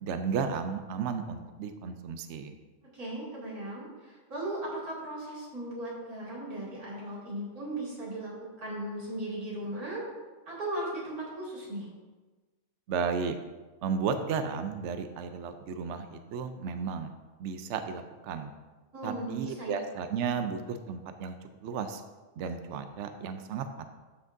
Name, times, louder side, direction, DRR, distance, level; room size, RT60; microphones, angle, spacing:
voice 1, 0.0-2.5 12.9-13.4 13.8-17.1 17.4-18.5 19.0-22.0 22.4-23.9, right 6 dB, 65° right, 8 dB, 0.8 m, -33 dB
voice 2, 2.9-8.3 8.6-10.0 10.5-11.9 18.9-19.8, right 1 dB, 90° right, -7 dB, 3.1 m, -37 dB
12.5 x 6.0 x 2.6 m, 1.3 s
omnidirectional pair, 1.5 m